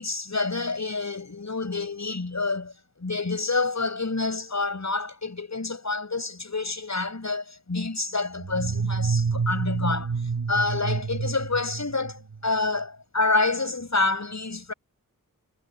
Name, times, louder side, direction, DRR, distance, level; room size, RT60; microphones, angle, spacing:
voice 1, 0.0-2.7 3.0-10.1 10.5-14.7, left 3 dB, 50° left, 7.6 m, -28 dB
sound 1, 8.4-12.5, right 5 dB, 90° right, 6.8 m, -28 dB
cardioid pair, 50°, 36 cm